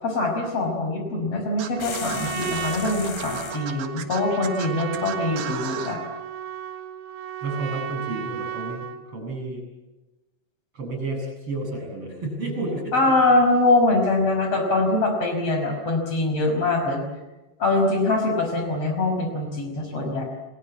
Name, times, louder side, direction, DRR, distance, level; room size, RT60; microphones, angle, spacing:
voice 1, 0.0-6.0 12.9-17.0 17.6-20.2, left 2 dB, 40° left, 4 dB, 6.3 m, -23 dB
Scratching (performance technique), 1.6-6.0, right 9 dB, 65° right, 2.9 m, -36 dB
Trumpet, 1.7-9.1, right 8 dB, 85° right, 3.5 m, -34 dB
sound 1, 1.8-3.7, left 7 dB, 70° left, 4.0 m, -36 dB
voice 2, 7.4-9.6 10.7-13.1, right 2 dB, 35° right, 3 dB, 8.8 m, -31 dB
27.5 x 21.0 x 8.6 m, 1.1 s
omnidirectional pair, 4.4 m